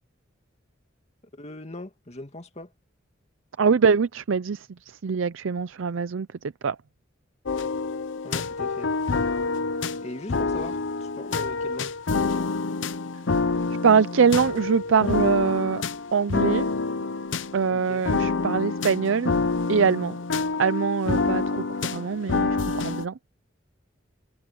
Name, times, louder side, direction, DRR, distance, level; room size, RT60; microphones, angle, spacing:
voice 1, 1.3-2.7 8.2-8.9 10.0-12.0 17.7-18.1, left 1 dB, 35° left, 2.3 m, -39 dB
voice 2, 3.6-6.3 6.6-6.8 13.8-15.8 16.1-16.7 17.5-19.3 19.7-20.2 20.6-23.2, right 6 dB, 80° right, 0.5 m, -23 dB
sound 1, 7.5-23.1, left 4 dB, 70° left, 0.7 m, -27 dB
head